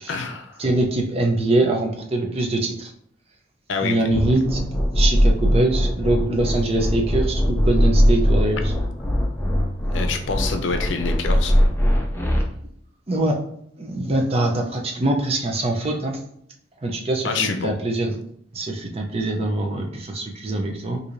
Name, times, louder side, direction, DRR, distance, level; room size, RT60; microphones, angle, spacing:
voice 1, 0.0-0.6 3.7-3.9 9.9-11.5 17.2-17.7, left 4 dB, 85° left, 6 dB, 0.5 m, -26 dB
voice 2, 0.6-2.9 3.8-4.6 4.9-8.7 13.1-13.4 13.8-16.2 16.8-18.1 18.5-21.1, right 2 dB, 35° right, 2 dB, 0.5 m, -23 dB
sound 1, 4.1-12.4, equal, 15° left, 0.5 m, -20 dB
4.6 x 2.6 x 2.6 m, 0.68 s
head